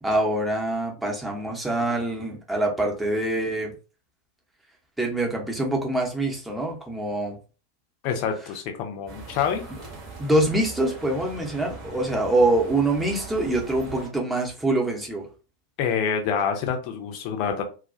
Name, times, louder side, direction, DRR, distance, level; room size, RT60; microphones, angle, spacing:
voice 1, 0.0-3.7 5.0-7.4 10.2-15.3, right 1 dB, 5° right, 0 dB, 0.7 m, -25 dB
voice 2, 8.0-9.6 15.8-17.6, left 7 dB, 45° left, 4 dB, 0.5 m, -26 dB
sound 1, 9.1-14.1, right 3 dB, 40° right, 0.8 m, -41 dB
2.3 x 2.1 x 2.5 m, 0.34 s
figure-of-eight pair, 90°, 0 cm